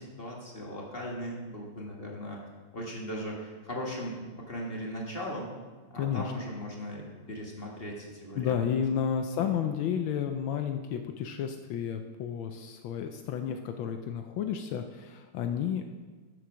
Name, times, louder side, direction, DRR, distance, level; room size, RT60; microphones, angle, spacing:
voice 1, 0.0-2.4 2.7-4.2 4.5-5.5 5.9-8.6 9.4-9.5, equal, 30° left, -2 dB, 1.5 m, -38 dB
voice 2, 6.0-6.3 8.4-15.9, left 8 dB, 75° left, 6 dB, 1.4 m, -31 dB
8.7 x 7.9 x 6.1 m, 1.4 s
omnidirectional pair, 2.2 m